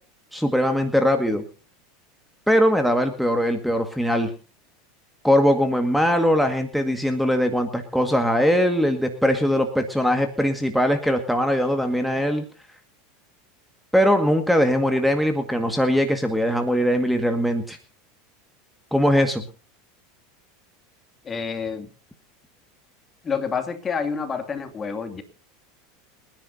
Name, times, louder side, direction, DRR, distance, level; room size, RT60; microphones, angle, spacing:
voice 1, 0.3-1.4 2.5-4.3 5.2-12.5 13.9-17.8 18.9-19.4, equal, ahead, 5 dB, 1.9 m, -21 dB
voice 2, 21.2-21.9 23.2-25.2, left 6 dB, 25° left, 7 dB, 2.5 m, -28 dB
29.5 x 10.5 x 2.8 m, 0.36 s
hypercardioid pair, 105°, 0 cm